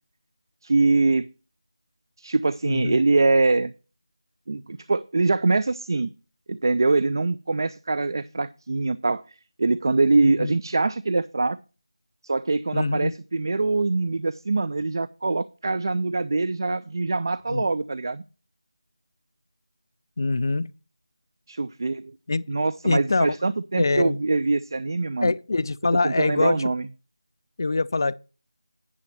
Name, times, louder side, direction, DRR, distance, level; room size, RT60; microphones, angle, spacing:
voice 1, 0.6-1.3 2.2-3.7 4.5-6.1 6.5-11.6 12.2-18.2 21.5-22.1 22.5-25.3 26.0-26.9, right 3 dB, 50° right, 0.4 m, -23 dB
voice 2, 2.7-3.0 10.2-10.6 12.7-13.1 17.5-17.7 20.2-20.7 22.3-22.5 22.8-23.3 23.8-24.2 25.2-26.6 27.6-28.2, left 3 dB, 50° left, 0.4 m, -24 dB
9.7 x 5.2 x 5.9 m
figure-of-eight pair, 165°, 3 cm